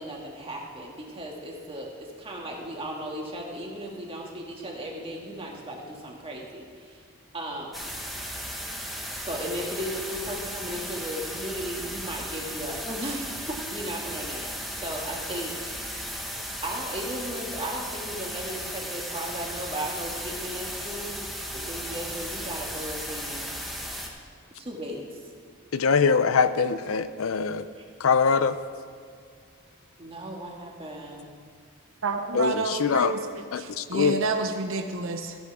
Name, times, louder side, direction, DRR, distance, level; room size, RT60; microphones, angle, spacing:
voice 1, 0.0-7.0 7.3-8.2 9.2-15.7 16.6-21.3 21.5-23.6 24.6-25.2 27.7-27.8 30.0-31.3, right 1 dB, 25° right, -1 dB, 1.7 m, -36 dB
sound 1, 7.7-24.1, equal, ahead, 1.1 m, -36 dB
voice 2, 25.7-27.7 28.0-28.6 32.3-33.1 33.5-34.2, left 5 dB, 70° left, 13 dB, 0.5 m, -23 dB
voice 3, 32.0-35.4, right 3 dB, 65° right, 5 dB, 0.9 m, -29 dB
14.5 x 8.3 x 4.8 m, 2.1 s
head